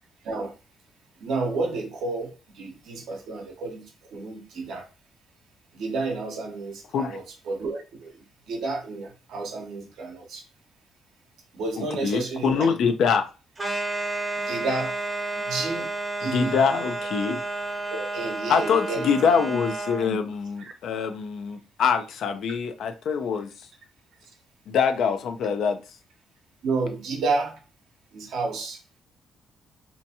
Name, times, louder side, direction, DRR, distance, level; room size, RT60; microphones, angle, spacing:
voice 1, 0.2-0.6 1.2-4.9 5.7-10.4 11.5-12.7 14.3-15.0 15.3-15.9 16.2-16.6 17.9-19.1 20.6-20.7 26.6-27.6 28.1-28.8, right 3 dB, 75° right, 0.8 m, -31 dB
voice 2, 11.8-13.3 16.2-17.4 18.5-23.5 24.7-25.8, left 6 dB, 70° left, 0.5 m, -24 dB
sound 1, 13.6-20.1, right 2 dB, 20° right, 0.7 m, -31 dB
2.7 x 2.3 x 2.8 m
cardioid pair, 90°, 0 cm